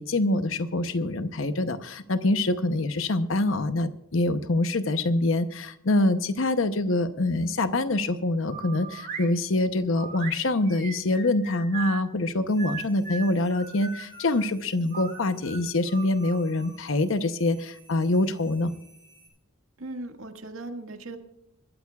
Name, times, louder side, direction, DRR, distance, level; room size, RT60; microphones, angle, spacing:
voice 1, 0.0-18.7, left 2 dB, 75° left, 10 dB, 0.8 m, -25 dB
sound 1, 8.5-9.3 9.9-12.0 12.6-14.4 14.9-16.8, right 6 dB, 45° right, 2.6 m, -39 dB
sound 2, 12.5-19.3, right 1 dB, 25° left, 5.7 m, -57 dB
voice 2, 19.8-21.2, right 2 dB, 85° right, 5 dB, 1.9 m, -38 dB
26.0 x 13.0 x 2.4 m, 0.78 s
head